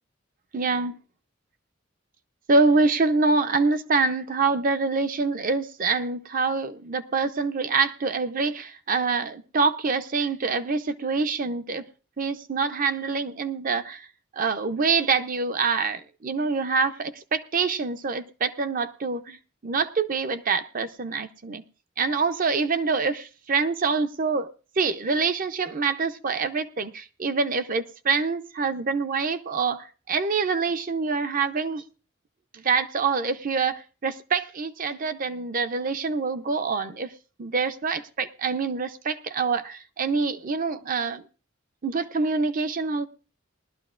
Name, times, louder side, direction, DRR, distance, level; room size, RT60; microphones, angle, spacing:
voice 1, 0.5-1.0 2.5-11.8 12.2-14.1 14.4-19.4 19.6-21.6 22.0-24.5 24.8-31.8 32.5-37.1 37.4-41.2 41.8-43.1, right 4 dB, 40° right, 10 dB, 0.6 m, -25 dB
20.0 x 12.5 x 2.5 m, 0.36 s
head